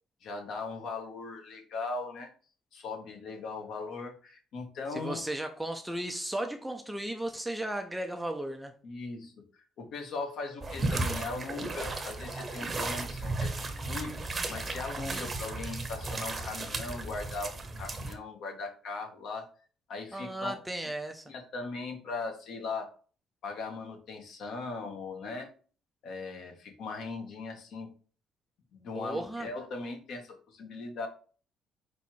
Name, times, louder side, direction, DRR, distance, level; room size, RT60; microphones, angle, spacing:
voice 1, 0.2-2.3 2.7-5.2 8.8-13.5 13.8-14.1 14.5-19.4 19.9-20.5 21.3-22.9 23.4-25.5 26.0-27.9 28.7-31.1, left 3 dB, 60° left, 1.7 m, -39 dB
voice 2, 4.9-8.7 15.1-15.3 20.1-21.3 28.9-29.5, right 1 dB, 5° right, 0.6 m, -35 dB
sound 1, 10.6-18.2, right 2 dB, 25° right, 0.9 m, -35 dB
5.0 x 4.1 x 4.5 m
cardioid pair, 145°, 0 cm